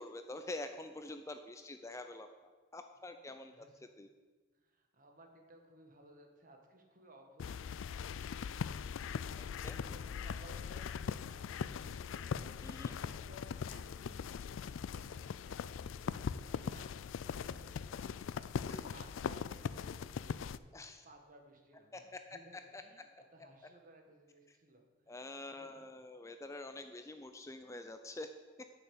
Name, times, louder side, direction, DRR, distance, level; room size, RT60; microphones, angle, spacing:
voice 1, 0.0-3.7 4.0-4.1 9.4-9.7 12.6-13.0 18.7-18.9 20.7-21.0 21.9-22.8 25.1-28.3 28.6-28.7, left 2 dB, 15° left, 7 dB, 0.4 m, -46 dB
voice 2, 3.2-3.8 4.5-14.3 14.5-18.1 18.3-20.5 21.0-25.3 25.6-25.8, right 1 dB, 45° right, 3 dB, 1.6 m, -61 dB
sound 1, 7.4-20.6, left 6 dB, 80° left, 0.4 m, -41 dB
9.2 x 6.8 x 8.3 m, 1.4 s
head